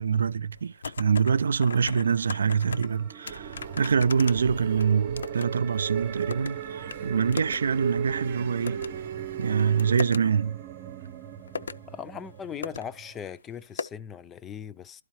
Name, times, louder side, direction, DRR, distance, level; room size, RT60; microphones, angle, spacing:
voice 1, 0.0-8.9 9.4-10.6, right 6 dB, 80° right, 0.3 m, -25 dB
sound 1, 0.5-1.3 1.6-2.9 3.3-5.5 5.8-6.5 6.9-7.0 7.3-7.6 7.9-8.0 8.7-8.9 9.4-10.2 11.0-11.1 11.5-11.8 12.3-12.4 12.6-12.8 13.1-13.2 13.8-13.9, left 5 dB, 85° left, 0.5 m, -37 dB
sound 2, 1.2-13.2, right 10 dB, 25° right, 0.9 m, -43 dB
sound 3, 3.3-10.0, right 7 dB, 50° right, 0.7 m, -36 dB
voice 2, 11.9-15.0, left 8 dB, 10° left, 0.4 m, -39 dB
13.0 x 4.7 x 3.0 m
hypercardioid pair, 165°, 0 cm